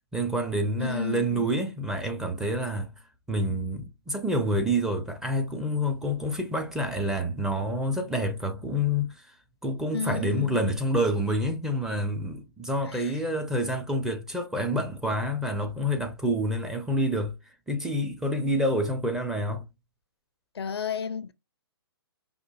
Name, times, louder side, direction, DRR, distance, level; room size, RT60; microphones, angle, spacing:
voice 1, 0.1-2.9 3.3-9.3 9.6-17.3 17.7-19.6, equal, 5° right, 0.5 m, -28 dB
voice 2, 0.8-1.5 9.9-10.7 12.8-13.2 20.5-21.3, left 6 dB, 75° left, 0.4 m, -32 dB
5.0 x 2.4 x 2.3 m
figure-of-eight pair, 130°, 13 cm